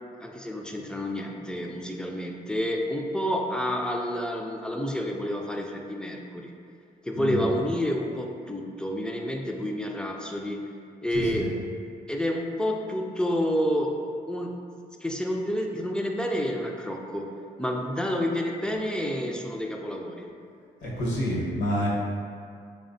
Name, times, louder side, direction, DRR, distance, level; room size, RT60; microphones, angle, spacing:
voice 1, 0.2-6.5 7.1-10.6 11.0-11.5 12.1-14.5 15.0-17.3 17.6-20.3, equal, 5° left, 1 dB, 0.3 m, -29 dB
voice 2, 11.1-11.5 20.8-21.9, equal, 70° left, -5 dB, 0.9 m, -28 dB
3.3 x 2.1 x 2.6 m, 2.4 s
supercardioid pair, 55°, 19 cm